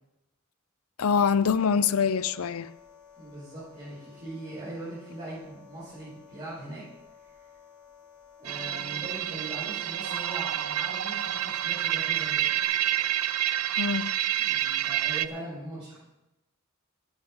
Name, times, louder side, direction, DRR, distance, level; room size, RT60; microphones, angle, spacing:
voice 1, 1.0-2.7 13.8-14.1, left 6 dB, 75° left, 0.5 m, -24 dB
sound 1, 1.5-12.6, left 7 dB, 35° left, 5.6 m, -54 dB
voice 2, 3.2-6.8 8.4-12.5 14.4-15.9, right 1 dB, 30° right, 5.7 m, -41 dB
sound 2, 8.4-15.3, right 12 dB, 90° right, 0.5 m, -28 dB
12.0 x 8.8 x 6.7 m
head